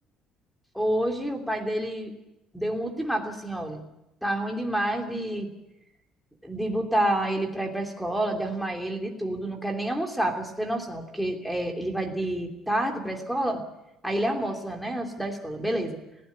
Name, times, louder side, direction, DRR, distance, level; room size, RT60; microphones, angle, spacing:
voice 1, 0.7-2.1 2.5-3.8 4.2-5.5 6.4-13.6 14.0-16.0, right 1 dB, ahead, 4 dB, 3.0 m, -28 dB
20.0 x 15.5 x 9.7 m, 0.91 s
cardioid pair, 150°, 0 cm